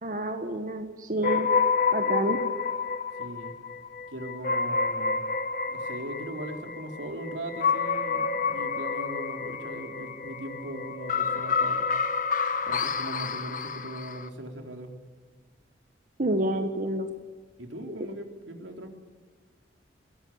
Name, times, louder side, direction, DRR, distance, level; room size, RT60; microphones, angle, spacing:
voice 1, 0.0-1.5 1.9-2.4 16.2-17.1, right 1 dB, 45° right, 6 dB, 1.5 m, -28 dB
sound 1, 1.2-14.3, left 5 dB, 45° left, 1.2 m, -29 dB
voice 2, 3.2-3.6 4.1-5.2 5.7-11.9 12.7-15.0 17.6-18.9, right 1 dB, 90° right, 4 dB, 3.9 m, -39 dB
22.0 x 18.0 x 8.7 m, 1.4 s
head